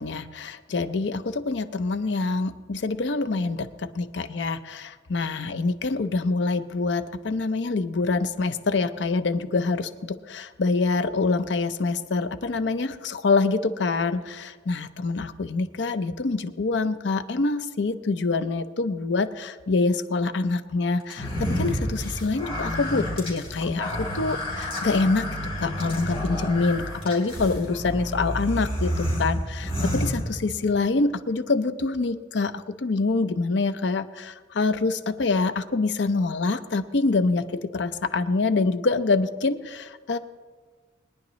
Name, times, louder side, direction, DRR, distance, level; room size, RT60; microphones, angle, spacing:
voice 1, 0.0-25.3 25.6-40.2, left 3 dB, 70° left, 11 dB, 0.6 m, -25 dB
sound 1, 21.1-30.8, equal, 30° left, 3.2 m, -30 dB
21.5 x 10.5 x 3.1 m, 1.4 s
head